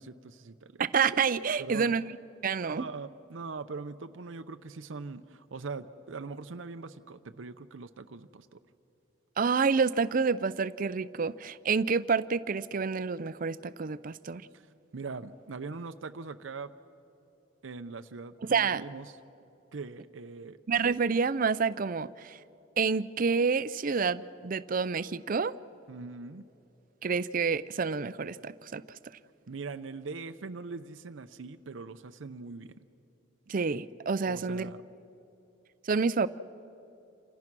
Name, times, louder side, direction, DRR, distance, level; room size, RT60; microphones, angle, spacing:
voice 1, 0.0-0.8 1.6-1.9 2.4-8.6 14.5-14.6 14.9-16.7 17.6-19.1 19.7-20.6 25.9-26.4 29.5-32.9 34.2-34.8, right 4 dB, 90° right, 8 dB, 0.6 m, -41 dB
voice 2, 0.8-2.1 2.4-2.9 9.4-14.4 18.5-18.8 20.7-22.4 22.8-25.5 27.0-28.8 33.5-34.7 35.9-36.3, right 5 dB, 45° right, 16 dB, 0.5 m, -28 dB
28.5 x 26.5 x 6.1 m, 2.8 s
head